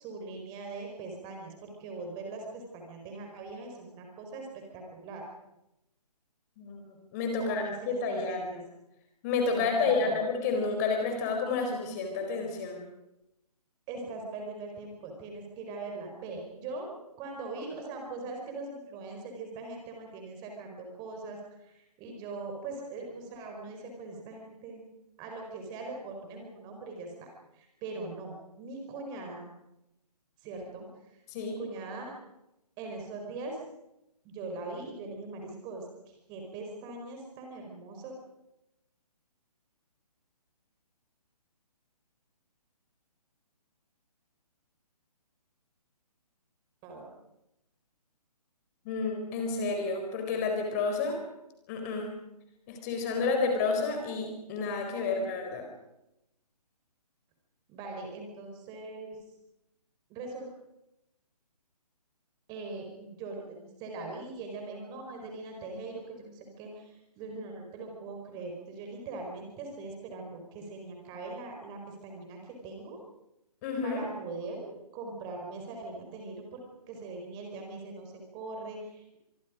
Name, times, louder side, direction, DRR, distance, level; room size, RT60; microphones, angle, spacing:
voice 1, 0.0-5.2 7.4-8.6 9.5-10.2 13.9-16.9 17.2-24.8 25.2-27.3 27.5-29.5 30.4-32.1 32.8-33.6 34.2-38.1 46.8-47.1 57.7-59.2 60.1-60.5 62.5-73.0 73.8-79.2, right 3 dB, 20° right, 2 dB, 4.8 m, -41 dB
voice 2, 6.6-8.4 9.2-12.8 31.3-31.6 48.8-51.1 51.7-52.1 52.7-55.7 73.6-74.0, left 4 dB, 25° left, 3 dB, 4.3 m, -30 dB
25.0 x 24.0 x 5.2 m, 0.87 s
figure-of-eight pair, 140°, 21 cm